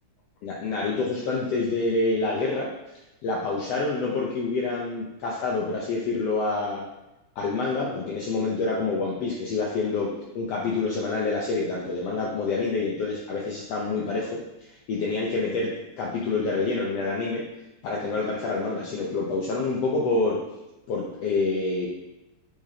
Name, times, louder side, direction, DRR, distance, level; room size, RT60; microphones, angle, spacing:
voice 1, 0.4-2.7 3.2-6.9 7.4-10.1 10.4-15.7 16.0-17.4 17.8-20.4 20.9-21.9, left 3 dB, 70° left, -3 dB, 1.7 m, -27 dB
7.7 x 6.4 x 2.8 m, 0.96 s
omnidirectional pair, 3.4 m